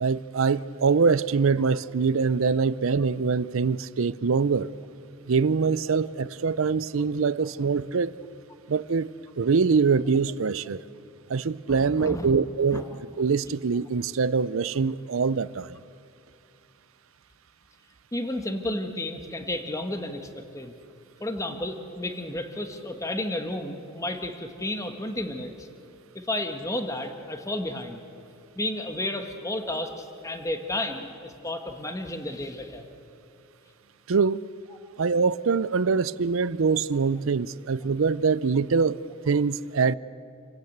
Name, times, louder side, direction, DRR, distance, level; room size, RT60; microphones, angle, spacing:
voice 1, 0.0-4.7 5.3-8.1 8.7-10.8 11.3-12.8 13.2-15.8 34.1-34.4 35.0-39.9, right 5 dB, 75° right, 0.5 m, -24 dB
voice 2, 11.7-12.3 12.7-12.9 18.1-20.7 21.2-25.7 26.1-28.0 28.5-32.9, left 1 dB, 15° left, 1.4 m, -32 dB
28.5 x 17.5 x 8.1 m
head